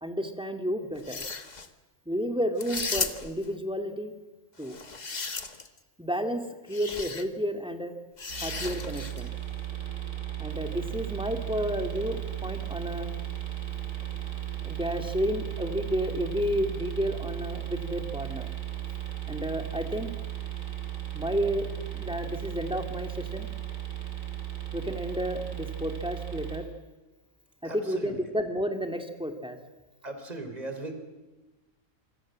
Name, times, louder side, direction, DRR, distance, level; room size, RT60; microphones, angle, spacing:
voice 1, 0.0-1.3 2.1-4.1 4.6-4.8 6.0-6.4 6.7-7.9 8.4-9.3 10.4-13.1 14.6-18.5 19.3-20.1 21.1-23.5 24.7-26.7 27.6-29.6, equal, 5° right, 5 dB, 2.4 m, -31 dB
sound 1, 1.0-1.7 2.6-3.5 4.6-5.8 6.7-7.2 8.2-9.3, left 4 dB, 35° left, 1.4 m, -35 dB
sound 2, 8.3-26.6, right 13 dB, 80° right, 4.6 m, -36 dB
voice 2, 27.6-28.2 30.0-30.9, right 2 dB, 30° right, 6 dB, 3.7 m, -38 dB
27.5 x 25.0 x 7.6 m, 1.1 s
omnidirectional pair, 1.4 m